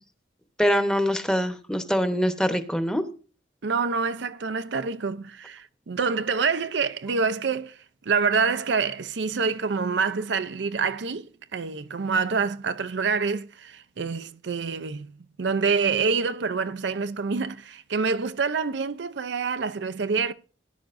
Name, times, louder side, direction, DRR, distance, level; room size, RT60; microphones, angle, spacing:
voice 1, 0.6-3.0, equal, 5° left, 1.0 m, -24 dB
voice 2, 3.6-7.7 8.1-15.1 15.4-20.3, right 5 dB, 75° right, 0.5 m, -26 dB
18.5 x 10.5 x 2.6 m
head